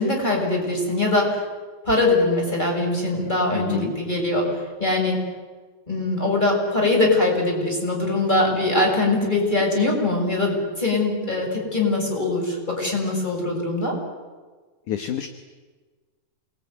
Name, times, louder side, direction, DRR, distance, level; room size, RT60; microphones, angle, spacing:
voice 1, 0.0-1.4 1.8-5.2 5.9-14.0, left 2 dB, 10° left, 0 dB, 7.0 m, -22 dB
voice 2, 3.5-3.9 14.9-15.3, left 10 dB, 65° left, 7 dB, 2.4 m, -28 dB
28.0 x 21.5 x 9.6 m, 1.4 s
omnidirectional pair, 4.7 m